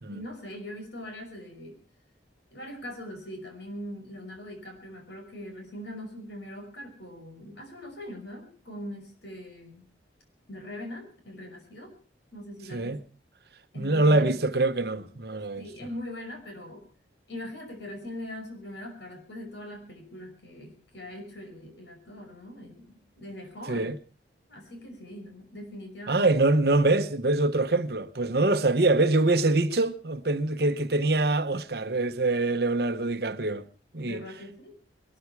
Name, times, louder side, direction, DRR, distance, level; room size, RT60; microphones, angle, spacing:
voice 1, 0.1-1.8 2.5-9.9 10.5-11.9 12.3-13.0 13.7-14.4 15.6-16.9 17.3-23.9 24.5-26.3 34.0-34.8, left 1 dB, 80° left, 5.6 m, -41 dB
voice 2, 13.7-15.6 23.7-24.0 26.1-33.6 33.9-34.2, right 2 dB, 60° right, 1.0 m, -24 dB
21.5 x 13.0 x 4.7 m
head